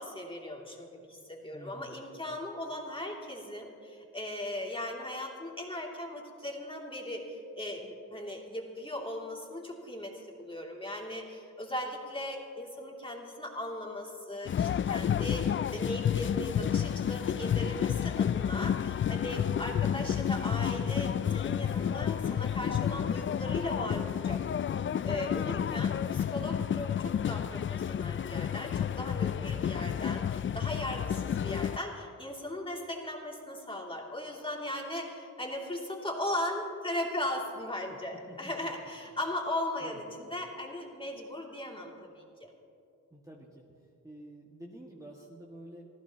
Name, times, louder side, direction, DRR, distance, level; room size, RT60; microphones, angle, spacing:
voice 1, 0.0-24.4 25.0-42.5, left 1 dB, 15° left, -1 dB, 2.8 m, -38 dB
voice 2, 1.5-2.0 29.3-29.6 37.9-38.7 39.8-40.0 43.1-43.8 44.0-45.9, right 1 dB, 10° right, -2 dB, 1.9 m, -49 dB
sound 1, 14.5-31.8, left 9 dB, 35° left, 0.4 m, -30 dB
26.0 x 14.5 x 3.0 m, 2.5 s
cardioid pair, 65°, 34 cm